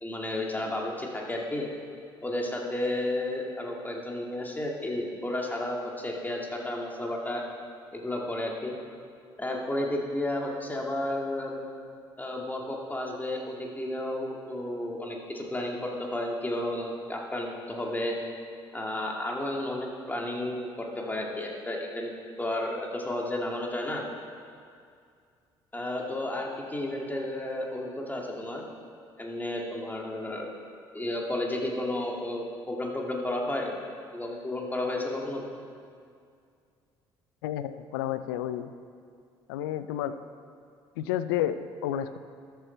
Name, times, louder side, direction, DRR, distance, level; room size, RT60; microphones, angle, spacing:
voice 1, 0.0-1.7 2.2-7.4 7.9-8.7 9.4-11.6 12.2-18.2 18.7-22.1 22.4-24.0 25.7-28.6 29.2-30.6 30.9-33.7 34.1-35.4, left 1 dB, 15° left, -1 dB, 2.1 m, -32 dB
voice 2, 37.4-38.7 39.5-40.2 41.0-42.2, left 11 dB, 85° left, 12 dB, 0.4 m, -31 dB
13.5 x 6.8 x 4.4 m, 2.3 s
hypercardioid pair, 55°, 12 cm